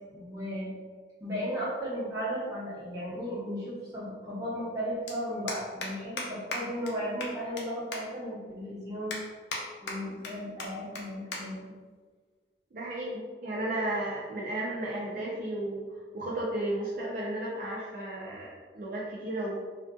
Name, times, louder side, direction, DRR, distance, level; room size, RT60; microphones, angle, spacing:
voice 1, 0.1-0.7 1.2-9.2 9.8-11.7, equal, 20° right, -8 dB, 0.9 m, -35 dB
sound 1, 2.8-2.9 4.3-4.4 4.6-4.8 5.1-5.2 5.5-5.9 6.2-6.3 6.5-6.6 6.9-7.0 7.2-7.6 7.9-8.0 8.5-8.6 9.1-9.6 9.9-10.3 10.6-10.7 10.9-11.0 11.3-11.4 11.7-12.0 12.7-13.0, left 3 dB, 80° left, 0.5 m, -36 dB
voice 2, 12.7-19.6, right 1 dB, 50° right, -5 dB, 0.4 m, -34 dB
2.5 x 2.4 x 2.3 m, 1.5 s
head